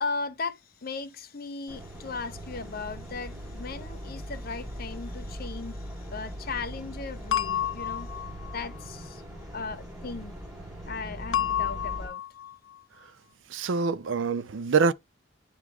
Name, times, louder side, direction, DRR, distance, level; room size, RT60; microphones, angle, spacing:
voice 1, 0.0-8.1 8.5-9.2 9.5-10.3 10.9-12.2, left 4 dB, 50° left, 0.8 m, -37 dB
sound 1, 1.7-12.1, equal, 15° right, 5.4 m, -40 dB
sound 2, 7.3-8.6 11.3-12.5, left 10 dB, 80° left, 0.5 m, -30 dB
voice 2, 13.5-14.9, right 5 dB, 70° right, 0.5 m, -25 dB
9.5 x 3.5 x 3.4 m
head